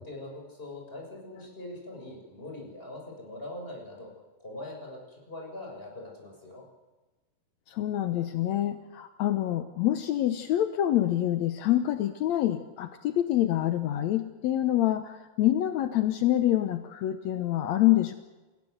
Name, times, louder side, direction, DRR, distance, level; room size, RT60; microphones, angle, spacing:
voice 1, 0.0-4.1 4.4-6.6, left 1 dB, 15° left, 0 dB, 6.7 m, -42 dB
voice 2, 7.7-18.1, left 13 dB, 75° left, 8 dB, 1.7 m, -26 dB
29.0 x 16.5 x 8.0 m, 1.2 s
omnidirectional pair, 4.2 m